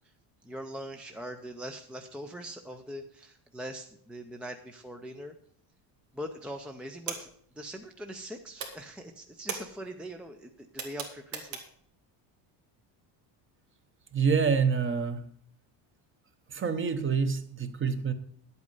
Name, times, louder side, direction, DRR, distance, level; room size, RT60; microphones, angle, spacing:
voice 1, 0.4-5.3 6.1-7.3 7.6-11.6, equal, 5° right, 5 dB, 0.4 m, -42 dB
Flat wall light switch push, 5.8-6.3 6.6-8.3 8.5-11.9, right 6 dB, 85° right, 2.5 m, -40 dB
voice 2, 14.1-15.2 16.5-18.1, right 5 dB, 25° right, 10 dB, 0.9 m, -27 dB
10.5 x 8.3 x 5.3 m, 0.63 s
cardioid pair, 150°, 44 cm